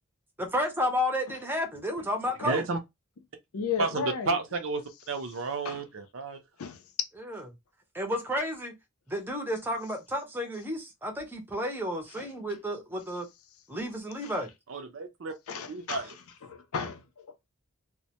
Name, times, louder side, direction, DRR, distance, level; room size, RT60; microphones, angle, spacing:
voice 1, 0.4-2.6 7.3-7.4 7.9-8.7 9.1-13.3 13.7-14.5, left 1 dB, 10° right, 0.5 m, -31 dB
voice 2, 2.4-2.8 3.8-6.4 14.7-15.3 15.7-16.1, right 3 dB, 60° right, 0.5 m, -32 dB
voice 3, 3.5-4.4 5.6-5.8 6.6-6.9 12.2-12.3 14.2-14.3 15.5-16.1 16.5-17.3, left 6 dB, 75° left, 0.5 m, -35 dB
2.1 x 2.1 x 2.8 m
head